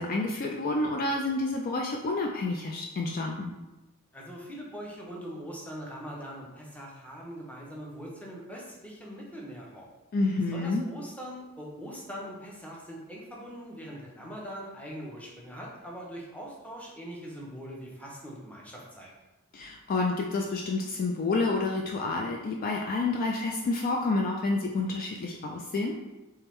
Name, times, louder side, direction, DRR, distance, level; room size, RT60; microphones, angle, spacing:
voice 1, 0.0-3.5 10.1-10.8 19.5-26.0, left 3 dB, 40° left, 1 dB, 0.3 m, -29 dB
voice 2, 4.1-9.9 10.4-19.1, equal, 5° left, -3 dB, 0.7 m, -42 dB
3.5 x 3.3 x 3.1 m, 1.0 s
head